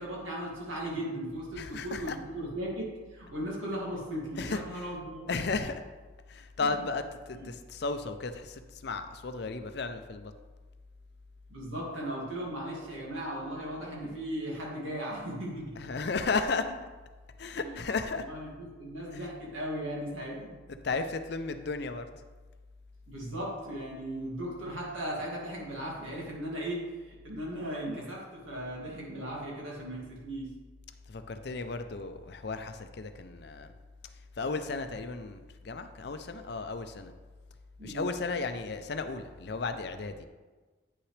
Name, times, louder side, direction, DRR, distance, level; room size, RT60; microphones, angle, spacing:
voice 1, 0.0-5.3 6.6-6.7 7.3-7.5 11.5-15.8 16.6-16.7 17.5-17.8 18.2-20.5 23.1-30.5 37.8-38.1, right 1 dB, 85° right, -4 dB, 2.3 m, -37 dB
voice 2, 1.6-2.2 4.4-4.9 5.3-5.8 6.3-10.3 15.8-16.7 17.4-18.2 19.1-19.3 20.8-22.1 31.1-33.7 34.4-37.1 37.8-40.3, left 4 dB, 55° left, 9 dB, 0.5 m, -34 dB
9.0 x 5.8 x 3.3 m, 1.3 s
head